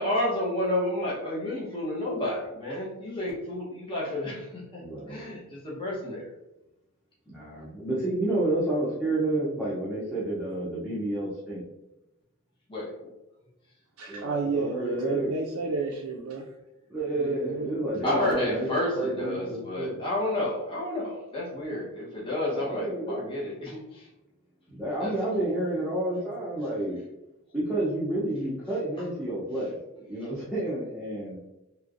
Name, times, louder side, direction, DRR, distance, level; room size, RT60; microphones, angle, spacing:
voice 1, 0.0-4.8 5.1-6.3 12.7-12.9 18.0-24.1 25.0-25.1, left 1 dB, 25° left, -6 dB, 0.9 m, -30 dB
voice 2, 4.8-5.4 7.3-11.6 14.1-15.3 16.9-18.7 18.9-20.0 22.5-23.2 24.7-27.0 27.5-29.7 30.1-31.4, right 1 dB, 5° right, -9 dB, 0.6 m, -30 dB
voice 3, 14.0-16.5 17.2-17.7, right 4 dB, 90° right, -1 dB, 0.4 m, -31 dB
3.1 x 3.0 x 2.5 m, 0.96 s
head